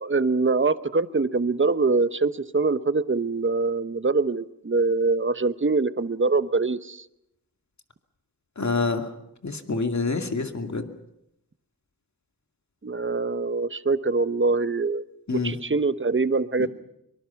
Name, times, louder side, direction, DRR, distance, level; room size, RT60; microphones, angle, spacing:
voice 1, 0.0-7.0 12.8-15.0 15.3-16.7, right 3 dB, 35° right, 14 dB, 1.0 m, -24 dB
voice 2, 8.6-9.1 9.4-10.9 15.3-15.5 16.6-16.7, left 3 dB, 50° left, 6 dB, 2.5 m, -27 dB
25.0 x 24.0 x 5.9 m, 0.82 s
wide cardioid pair, 75°, 35 cm